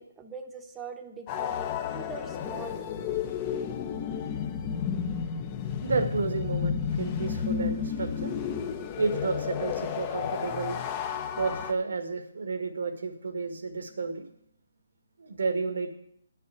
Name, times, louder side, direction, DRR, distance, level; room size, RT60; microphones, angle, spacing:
voice 1, 0.0-3.1 4.0-4.2, right 4 dB, 10° right, 5 dB, 1.0 m, -43 dB
sound 1, 1.3-11.7, left 8 dB, 25° left, 0.8 m, -32 dB
voice 2, 5.8-8.3 9.0-10.8 11.4-14.2 15.2-16.0, right 4 dB, 75° right, 7 dB, 1.7 m, -31 dB
9.7 x 6.7 x 8.2 m, 0.72 s
hypercardioid pair, 155°, 0 cm